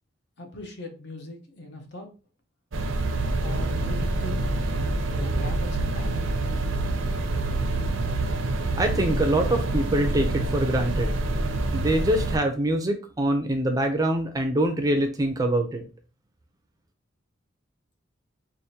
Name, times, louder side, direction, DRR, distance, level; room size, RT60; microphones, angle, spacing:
voice 1, 0.4-2.1 3.4-4.4 4.7-6.2, left 1 dB, 60° left, 4 dB, 0.9 m, -39 dB
sound 1, 2.7-12.4, right 2 dB, 75° right, 0.6 m, -26 dB
voice 2, 8.8-11.2 11.7-15.8, right 1 dB, 20° right, 6 dB, 0.5 m, -24 dB
4.9 x 2.5 x 2.8 m, 0.35 s
head